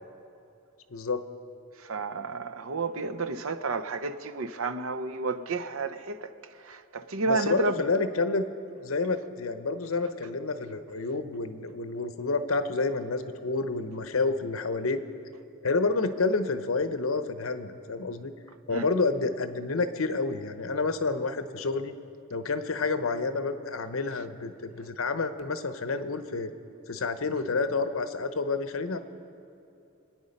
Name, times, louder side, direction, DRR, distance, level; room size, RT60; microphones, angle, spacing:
voice 1, 0.9-1.2 7.3-8.4 8.8-15.0 15.6-18.3 18.7-21.9 22.3-26.5 26.9-29.0, left 3 dB, 75° left, 0.8 m, -29 dB
voice 2, 1.8-6.3 6.6-7.8 18.7-18.8, right 3 dB, 75° right, 0.7 m, -31 dB
26.0 x 9.4 x 5.3 m
head